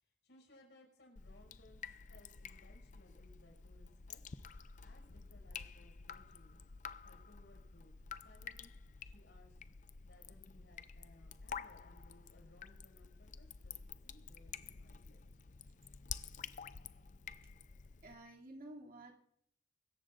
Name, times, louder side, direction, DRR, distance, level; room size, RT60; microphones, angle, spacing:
voice 1, 0.2-1.8 2.1-4.2 4.8-6.6 7.0-7.9 8.2-8.7 9.0-9.6 10.0-15.2, left 1 dB, 85° left, 2 dB, 5.7 m, -64 dB
Drip, 1.2-18.1, left 6 dB, 45° left, 0.5 m, -50 dB
voice 2, 14.8-15.8 18.0-19.1, right 1 dB, 55° right, 0 dB, 2.6 m, -54 dB
24.0 x 14.0 x 2.5 m, 0.71 s
head